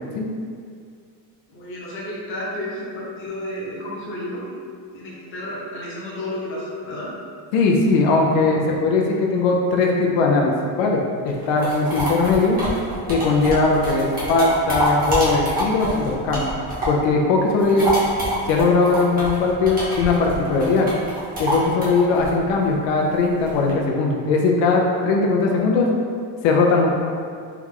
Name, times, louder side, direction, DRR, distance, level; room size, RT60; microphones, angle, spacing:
voice 1, 1.5-4.4 4.9-7.1, left 1 dB, 30° left, -6 dB, 0.9 m, -31 dB
voice 2, 7.5-10.5 10.8-12.6 13.1-16.5 16.9-18.0 18.5-20.9 21.4-25.9 26.4-26.9, left 3 dB, 85° left, -1 dB, 0.7 m, -19 dB
sound 1, 11.3-17.1 17.4-23.7, equal, 20° right, 0.9 m, -26 dB
3.5 x 3.0 x 3.7 m, 2.2 s
cardioid pair, 175°, 42 cm